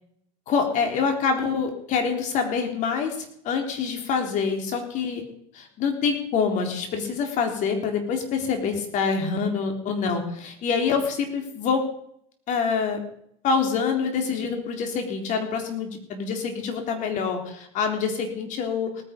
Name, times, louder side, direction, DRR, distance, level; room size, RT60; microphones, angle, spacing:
voice 1, 0.5-3.2 3.4-5.2 5.5-11.8 12.5-13.0 13.4-19.0, left 5 dB, 50° left, 4 dB, 3.8 m, -26 dB
18.5 x 9.8 x 5.4 m, 0.71 s
supercardioid pair, 110°, 16 cm